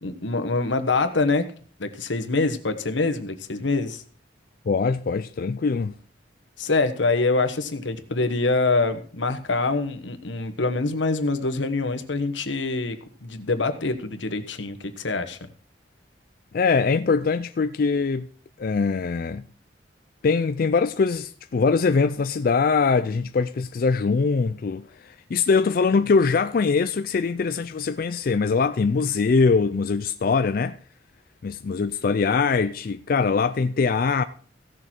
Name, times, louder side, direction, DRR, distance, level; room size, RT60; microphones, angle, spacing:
voice 1, 0.0-1.5 1.8-4.0 6.6-15.4, left 3 dB, 90° left, 1.2 m, -25 dB
voice 2, 4.7-5.9 16.5-18.3 18.6-19.4 20.2-30.8 31.4-34.2, left 4 dB, 50° left, 0.4 m, -22 dB
16.0 x 6.7 x 4.4 m
head